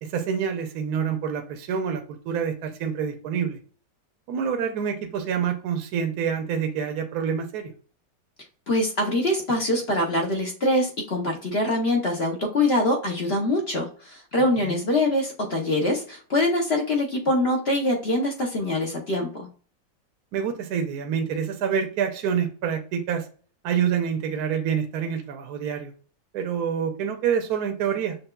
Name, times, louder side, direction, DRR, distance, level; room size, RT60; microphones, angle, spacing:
voice 1, 0.0-3.6 4.3-7.7 14.6-14.8 20.3-23.2 23.6-25.9 26.3-28.2, right 7 dB, 65° right, 4 dB, 1.1 m, -27 dB
voice 2, 8.7-19.5, left 1 dB, 50° left, 1 dB, 0.8 m, -24 dB
6.6 x 2.3 x 2.2 m, 0.40 s
omnidirectional pair, 1.9 m